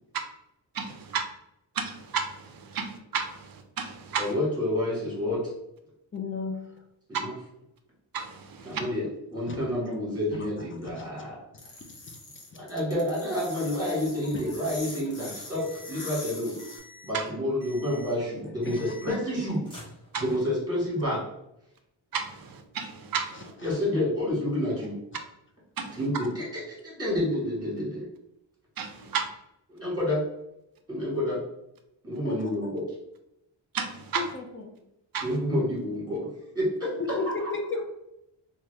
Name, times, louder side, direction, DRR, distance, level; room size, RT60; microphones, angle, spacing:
voice 1, 0.7-1.2 1.8-4.3 8.1-8.8 17.1-17.2 20.1-20.2 22.1-23.5 25.8-26.0 28.8-29.3 33.7-34.2 35.1-35.3, right 6 dB, 50° right, 6 dB, 0.5 m, -32 dB
voice 2, 4.2-5.4 7.1-7.3 8.6-11.4 12.5-16.6 17.0-19.6 20.2-21.2 23.6-25.0 25.9-28.0 29.7-30.2 30.9-31.4 32.0-32.8 35.2-36.3 36.5-37.2, left 1 dB, 10° right, -6 dB, 1.5 m, -29 dB
voice 3, 6.1-6.6 8.7-8.9 9.5-9.6 10.3-11.1 18.7-18.8 23.6-23.8 25.1-25.2 32.2-32.4 32.6-32.7 34.1-34.7 36.9-37.2 37.5-37.6, left 4 dB, 30° left, 3 dB, 0.4 m, -35 dB
sound 1, 11.6-16.8, left 3 dB, 70° left, 1.1 m, -42 dB
sound 2, 15.2-16.2 16.6-17.2 17.6-18.2 18.6-19.4 19.6-20.5, left 3 dB, 10° left, 1.2 m, -49 dB
2.8 x 2.4 x 3.2 m, 0.84 s
wide cardioid pair, 130°, 46 cm